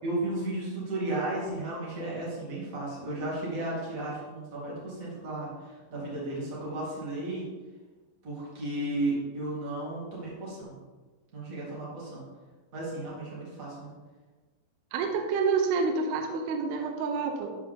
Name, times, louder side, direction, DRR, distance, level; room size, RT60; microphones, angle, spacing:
voice 1, 0.0-7.5 8.2-10.8 11.3-12.3 12.7-13.9, right 1 dB, 25° right, -6 dB, 1.9 m, -34 dB
voice 2, 14.9-17.6, right 5 dB, 75° right, 4 dB, 2.5 m, -28 dB
11.0 x 4.7 x 3.7 m, 1.3 s
omnidirectional pair, 5.2 m